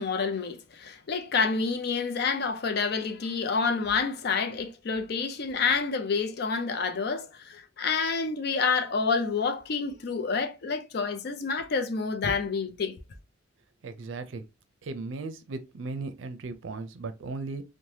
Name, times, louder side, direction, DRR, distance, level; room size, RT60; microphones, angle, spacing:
voice 1, 0.0-12.9, left 5 dB, 55° left, 0.4 m, -28 dB
voice 2, 13.8-14.4 14.8-17.6, right 3 dB, 80° right, 0.5 m, -36 dB
2.7 x 2.1 x 3.1 m
head